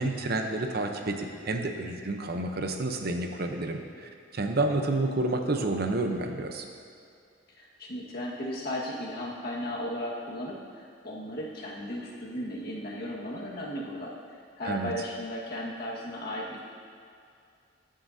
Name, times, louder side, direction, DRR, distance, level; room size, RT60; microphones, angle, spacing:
voice 1, 0.0-6.6 14.6-14.9, right 2 dB, 55° right, 4 dB, 0.8 m, -30 dB
voice 2, 7.6-14.1 14.6-16.6, left 1 dB, 55° left, -4 dB, 1.6 m, -35 dB
15.5 x 7.6 x 2.7 m, 2.4 s
head